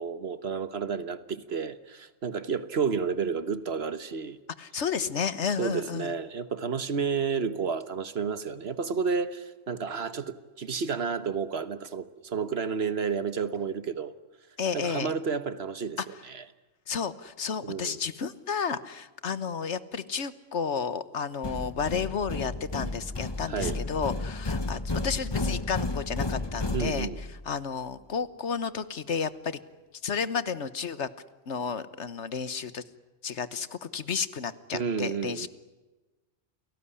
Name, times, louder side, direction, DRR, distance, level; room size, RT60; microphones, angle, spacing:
voice 1, 0.0-4.4 5.6-14.1 14.7-16.4 17.6-18.0 23.5-23.8 26.7-27.2 34.7-35.5, right 5 dB, 55° right, 1.4 m, -31 dB
voice 2, 4.6-6.1 14.6-15.1 16.9-27.1 27.4-29.6 30.0-31.1 31.5-32.8 33.2-35.5, left 6 dB, 65° left, 1.4 m, -32 dB
sound 1, 21.4-27.4, left 2 dB, 20° left, 1.1 m, -32 dB
29.0 x 18.5 x 10.0 m
omnidirectional pair, 1.3 m